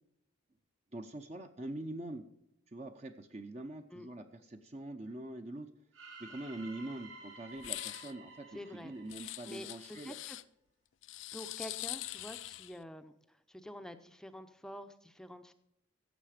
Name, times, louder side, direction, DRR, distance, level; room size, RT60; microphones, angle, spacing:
voice 1, 0.9-2.2 2.7-5.7 6.2-10.1, right 1 dB, 35° right, 6 dB, 0.7 m, -44 dB
sound 1, 5.9-10.0, right 3 dB, 80° right, 3.7 m, -53 dB
sound 2, 7.6-8.1 9.1-10.4 11.0-12.8, left 16 dB, 75° left, 0.4 m, -43 dB
voice 2, 8.5-8.9 9.2-9.7 10.0-10.4 11.3-15.5, equal, 5° left, 9 dB, 0.6 m, -48 dB
16.0 x 7.3 x 5.0 m, 0.79 s
head